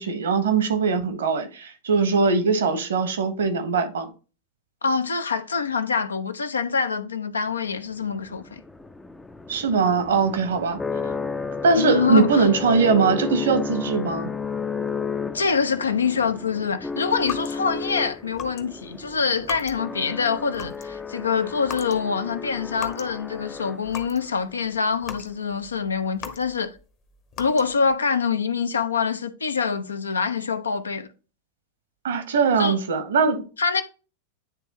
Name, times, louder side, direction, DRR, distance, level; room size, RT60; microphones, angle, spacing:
voice 1, 0.0-4.1 9.5-10.8 11.6-14.3 32.0-33.5, right 5 dB, 65° right, 1.2 m, -21 dB
voice 2, 4.8-8.6 11.8-12.5 15.3-26.7 27.4-31.1 32.6-32.8 33.6-33.8, left 5 dB, 75° left, 0.6 m, -25 dB
sound 1, 8.0-24.2, left 5 dB, 10° left, 0.5 m, -33 dB
sound 2, 17.2-17.9 18.3-18.6 18.9-20.0 20.4-21.0 21.6-22.0 22.3-23.2 23.5-24.3 24.6-26.8 27.3-27.9, left 7 dB, 30° left, 0.9 m, -38 dB
9.7 x 3.4 x 3.0 m
figure-of-eight pair, 90°, 0 cm